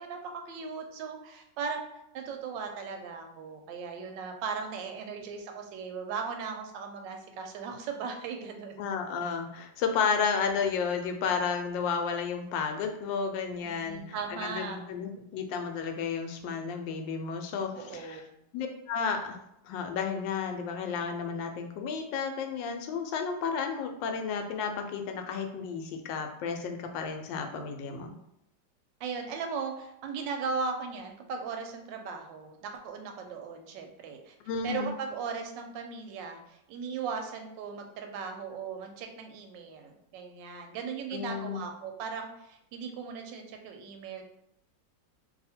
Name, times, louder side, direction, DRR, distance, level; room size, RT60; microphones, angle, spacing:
voice 1, 0.0-1.8 2.1-8.9 13.6-14.9 17.8-18.3 29.0-34.3 34.6-44.2, right 5 dB, 90° right, 4 dB, 1.3 m, -38 dB
voice 2, 8.8-14.0 14.3-18.2 18.5-19.4 19.6-28.1 34.4-34.9 41.1-41.6, left 6 dB, 85° left, 5 dB, 1.3 m, -32 dB
2.7 x 2.7 x 4.2 m, 0.81 s
omnidirectional pair, 1.9 m